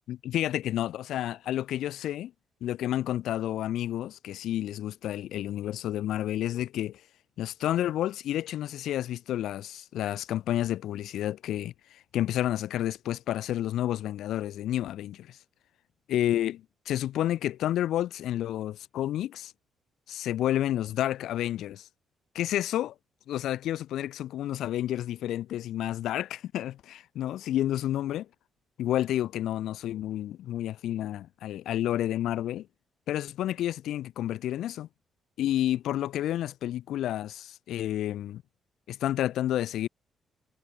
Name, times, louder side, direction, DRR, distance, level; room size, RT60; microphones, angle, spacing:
voice 1, 0.1-2.3 2.6-7.0 7.4-15.4 16.1-19.5 20.1-21.9 22.3-22.9 23.3-28.3 28.8-32.7 33.1-34.9 35.4-38.4 38.9-39.9, left 12 dB, 80° left, 0.5 m, -30 dB
cardioid pair, 90°, 0 cm